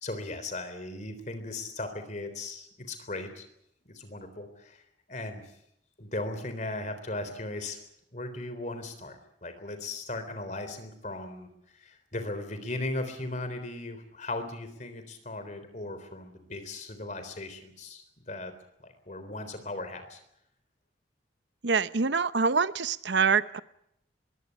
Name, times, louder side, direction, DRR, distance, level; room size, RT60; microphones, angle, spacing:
voice 1, 0.0-3.5 3.9-4.8 5.1-5.4 6.0-7.8 8.1-18.5 18.8-20.2, left 2 dB, 40° left, 9 dB, 3.7 m, -37 dB
voice 2, 21.6-23.6, right 5 dB, 80° right, 14 dB, 0.8 m, -25 dB
22.0 x 16.5 x 9.9 m, 0.78 s
head